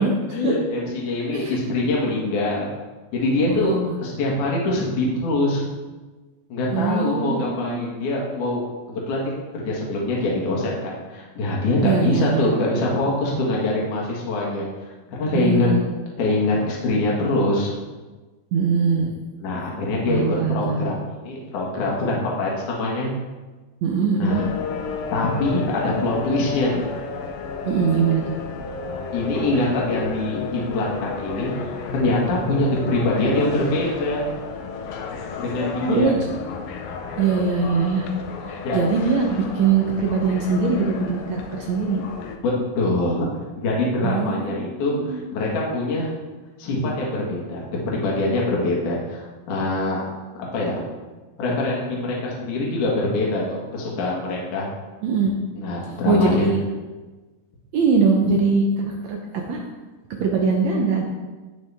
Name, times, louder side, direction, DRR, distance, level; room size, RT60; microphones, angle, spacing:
voice 1, 0.0-2.7 3.1-5.6 6.5-8.6 8.9-14.6 15.1-15.7 16.2-17.8 19.4-20.2 20.5-21.0 21.2-23.1 24.2-24.5 25.1-26.9 29.1-34.3 35.4-36.1 38.6-38.8 42.4-43.3 43.6-46.1 46.6-50.0 50.3-50.8 51.4-54.7 55.5-56.5, left 2 dB, 60° left, -3 dB, 3.0 m, -24 dB
voice 2, 3.5-3.8 6.7-7.8 11.8-12.5 15.3-15.9 18.5-19.1 20.1-20.8 23.8-24.4 27.6-28.3 35.9-36.3 37.2-38.1 38.7-42.0 44.0-45.2 55.0-55.3 56.0-56.6 57.7-59.2 59.5-59.6 60.2-61.0, right 5 dB, 80° right, 0 dB, 1.6 m, -21 dB
sound 1, 24.3-42.4, left 5 dB, 75° left, 2.3 m, -32 dB
17.0 x 5.9 x 3.5 m, 1.2 s
omnidirectional pair, 4.4 m